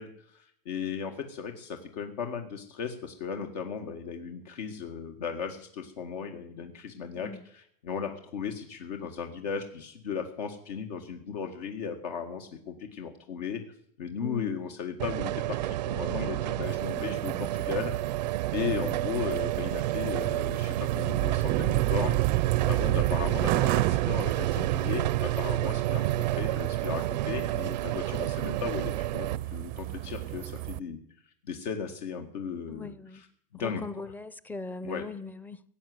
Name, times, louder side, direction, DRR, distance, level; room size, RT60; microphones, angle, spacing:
voice 1, 0.0-13.6 14.0-17.9 18.5-31.0 31.4-33.3 33.5-34.1 34.8-35.1, left 6 dB, 70° left, 2.1 m, -36 dB
voice 2, 14.2-14.6 17.0-17.4 24.1-24.2 32.7-33.2 33.5-35.6, left 4 dB, 10° left, 0.6 m, -40 dB
sound 1, 15.0-29.4, right 15 dB, 90° right, 0.6 m, -29 dB
sound 2, 16.6-30.8, right 19 dB, 40° right, 0.5 m, -34 dB
16.5 x 9.1 x 8.0 m
supercardioid pair, 135°, 21 cm